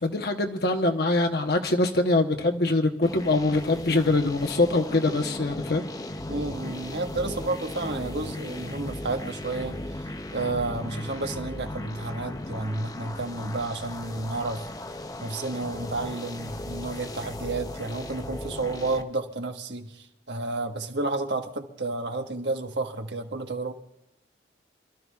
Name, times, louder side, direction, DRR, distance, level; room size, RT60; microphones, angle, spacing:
voice 1, 0.0-5.8, left 2 dB, 60° left, 4 dB, 1.0 m, -23 dB
sound 1, 3.0-19.0, left 1 dB, 20° left, 0.6 m, -37 dB
voice 2, 6.3-14.7 15.2-23.7, right 2 dB, 80° right, 4 dB, 1.3 m, -31 dB
26.5 x 12.5 x 2.4 m, 0.90 s
head